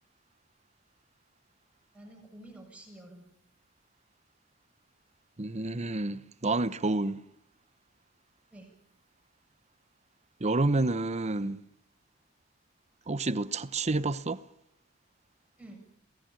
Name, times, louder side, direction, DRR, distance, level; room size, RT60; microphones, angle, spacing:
voice 1, 1.9-3.3 8.5-8.7 15.6-16.0, right 1 dB, 5° right, 7.4 m, -50 dB
voice 2, 5.4-7.2 10.4-11.6 13.1-14.4, right 2 dB, 35° right, 0.9 m, -29 dB
27.0 x 18.0 x 9.0 m
head